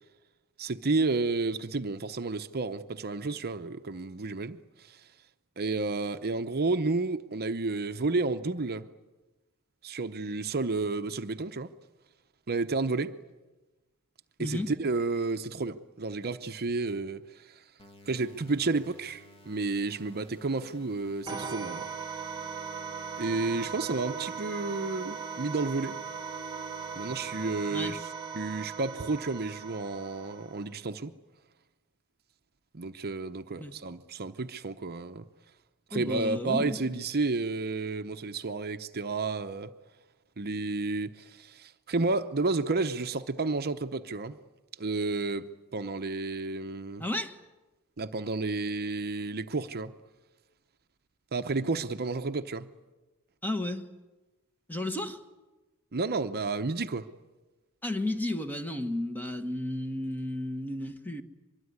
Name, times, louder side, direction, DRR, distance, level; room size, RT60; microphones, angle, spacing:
voice 1, 0.6-5.0 5.6-8.9 9.8-11.7 12.5-13.2 14.4-17.6 18.1-21.9 23.2-26.0 27.0-28.1 28.3-31.1 32.7-35.3 35.9-39.7 40.4-44.4 44.8-47.0 48.0-49.9 51.3-52.7 55.9-57.1, right 3 dB, 45° right, 0.8 m, -31 dB
voice 2, 14.4-14.7 27.7-27.9 33.5-33.7 35.9-37.0 47.0-47.4 53.4-53.9 54.7-55.2 57.8-61.2, left 1 dB, 10° left, 1.4 m, -33 dB
sound 1, 17.8-27.8, left 1 dB, 25° left, 1.7 m, -55 dB
sound 2, 21.3-30.7, right 6 dB, 20° right, 1.4 m, -39 dB
24.0 x 22.5 x 9.6 m
head